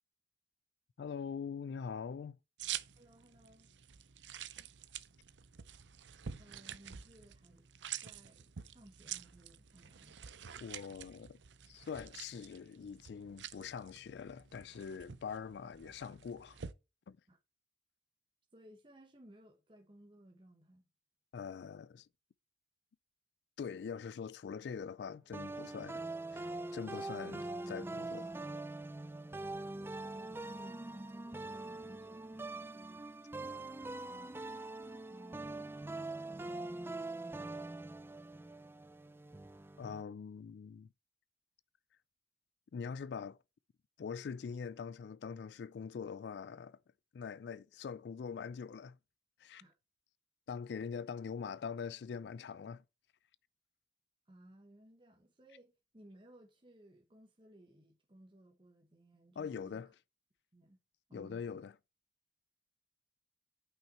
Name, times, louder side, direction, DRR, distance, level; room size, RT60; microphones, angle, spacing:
voice 1, 1.0-2.4 10.6-11.4 11.7-16.6 17.1-17.2 21.3-22.1 23.6-26.0 26.3-28.4 39.8-40.9 42.7-43.4 44.0-46.8 47.1-49.0 49.4-49.6 50.5-52.8 59.4-59.9 61.1-61.7, left 6 dB, 70° left, 0.3 m, -43 dB
sound 1, 2.6-16.7, right 9 dB, 90° right, 0.6 m, -48 dB
voice 2, 2.9-3.7 6.4-7.7 8.0-10.2 17.3-17.4 18.5-20.8 29.3-33.0 33.9-34.3 35.1-35.7 36.3-36.9 49.6-49.7 54.3-59.8 60.5-60.8 61.1-61.6, right 1 dB, 30° right, 1.1 m, -60 dB
sound 2, 25.3-40.0, right 2 dB, 15° right, 0.4 m, -43 dB
8.9 x 5.7 x 4.3 m
head